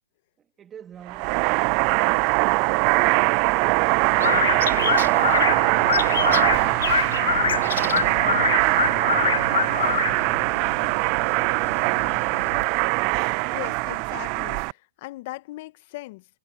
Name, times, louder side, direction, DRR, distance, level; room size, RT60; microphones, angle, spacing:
voice 1, 0.4-2.2, right 9 dB, 20° right, 3.4 m, -46 dB
sound 1, 1.1-14.7, right 32 dB, 40° right, 0.3 m, -22 dB
sound 2, 4.2-12.6, left 8 dB, 75° left, 0.5 m, -26 dB
voice 2, 13.5-16.3, left 19 dB, 45° left, 1.5 m, -38 dB
hypercardioid pair, 130°, 0 cm